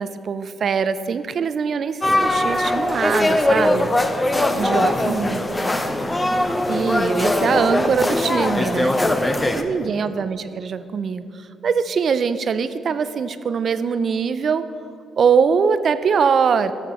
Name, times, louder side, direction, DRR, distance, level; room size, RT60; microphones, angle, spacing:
voice 1, 0.0-3.9 4.6-5.4 6.7-8.9 9.6-14.7 15.2-16.7, right 6 dB, 50° right, 13 dB, 0.3 m, -22 dB
sound 1, 2.0-9.6, left 1 dB, 15° left, 0.5 m, -21 dB
sound 2, 2.2-10.2, equal, 80° left, 1.6 m, -43 dB
voice 2, 4.2-6.3 8.5-9.5 9.7-10.0, left 1 dB, 40° left, -3 dB, 2.0 m, -36 dB
12.5 x 6.5 x 3.0 m, 2.5 s
cardioid pair, 90°, 0 cm